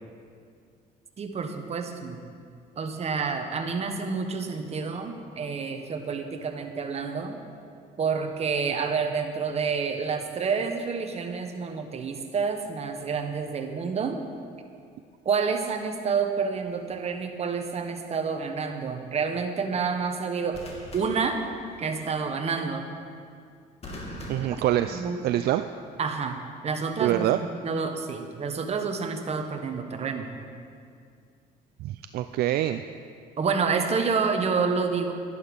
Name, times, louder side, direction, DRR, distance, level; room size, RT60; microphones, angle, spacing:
voice 1, 1.2-2.2 2.8-7.4 8.0-14.2 15.2-20.6 20.9-21.4 21.8-22.9 24.5-24.6 24.9-25.2 26.0-30.3 33.4-35.1, right 5 dB, 40° right, 5 dB, 1.2 m, -29 dB
sound 1, 16.7-17.0 20.5-22.0 23.8-25.5 26.7-27.0, left 1 dB, 35° left, 2.3 m, -43 dB
voice 2, 24.3-25.7 27.0-27.4 31.8-32.8, right 13 dB, 65° right, 9 dB, 0.4 m, -25 dB
11.5 x 11.0 x 5.3 m, 2.3 s
cardioid pair, 110°, 17 cm